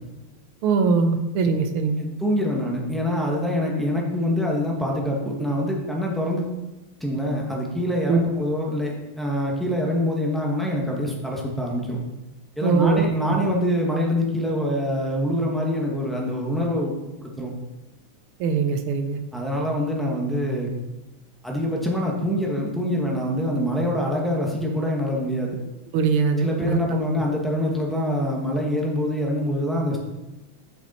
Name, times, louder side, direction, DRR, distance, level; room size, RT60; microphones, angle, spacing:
voice 1, 0.6-2.1 8.1-8.2 12.6-13.0 18.4-19.2 25.9-26.8, right 5 dB, 90° right, 8 dB, 1.6 m, -21 dB
voice 2, 2.0-6.5 7.0-12.0 12.6-16.9 17.2-17.5 19.3-20.7 21.4-25.6 26.4-30.0, left 1 dB, ahead, -3 dB, 0.4 m, -25 dB
7.0 x 6.1 x 4.1 m, 1.0 s
omnidirectional pair, 2.3 m